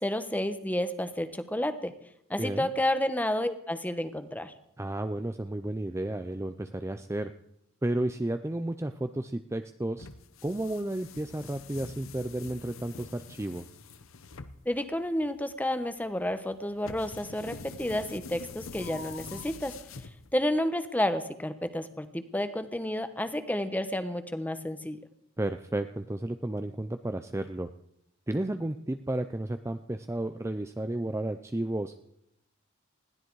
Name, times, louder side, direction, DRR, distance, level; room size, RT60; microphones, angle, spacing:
voice 1, 0.0-1.9 2.3-4.5 14.6-19.8 20.3-25.0, left 1 dB, 10° left, 10 dB, 1.1 m, -30 dB
voice 2, 2.4-2.7 4.8-7.3 7.8-10.1 10.4-13.7 25.4-27.7 28.3-32.0, right 1 dB, 15° right, 8 dB, 0.5 m, -32 dB
sound 1, 10.0-20.6, left 4 dB, 75° left, 1.0 m, -45 dB
20.5 x 15.0 x 4.7 m, 0.76 s
head